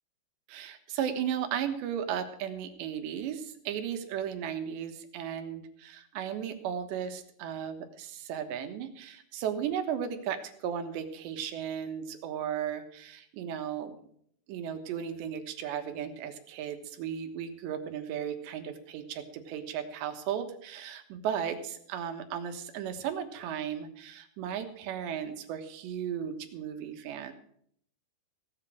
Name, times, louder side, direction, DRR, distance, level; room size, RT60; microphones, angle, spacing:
voice 1, 0.5-14.0 14.5-27.3, right 8 dB, 75° right, 6 dB, 3.4 m, -35 dB
16.5 x 8.2 x 6.3 m, 0.65 s
omnidirectional pair, 5.3 m